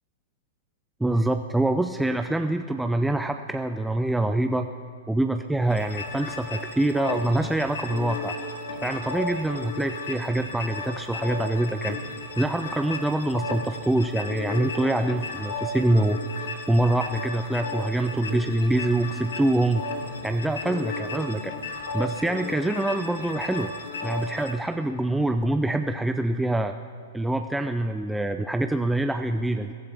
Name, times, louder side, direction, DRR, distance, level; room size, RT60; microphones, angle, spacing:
voice 1, 1.0-4.7 5.1-8.4 8.8-12.0 12.4-16.2 16.7-19.8 20.2-21.5 21.9-23.7 24.0-26.7 27.1-29.7, right 1 dB, 5° right, 6 dB, 0.4 m, -25 dB
sound 1, 5.7-24.5, left 3 dB, 80° left, 1.9 m, -34 dB
22.0 x 12.5 x 3.4 m, 2.2 s
hypercardioid pair, 120°, 0 cm